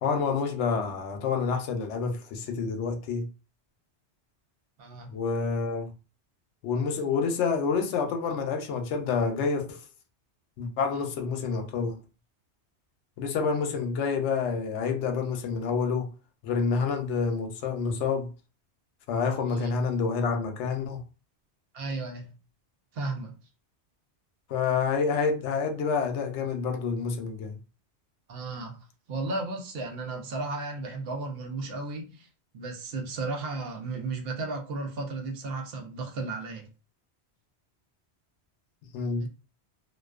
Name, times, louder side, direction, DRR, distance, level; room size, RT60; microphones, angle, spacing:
voice 1, 0.0-3.3 5.1-5.9 6.6-9.8 10.6-12.0 13.2-16.1 16.4-18.3 19.1-21.0 24.5-27.6 38.9-39.3, left 5 dB, 85° left, 0.9 m, -28 dB
voice 2, 4.8-5.1 19.5-19.7 21.7-22.3 22.9-23.4 28.3-28.8 29.1-32.3 32.5-36.7 39.2-39.3, right 3 dB, 65° right, 0.8 m, -34 dB
2.4 x 2.2 x 2.3 m
omnidirectional pair, 1.2 m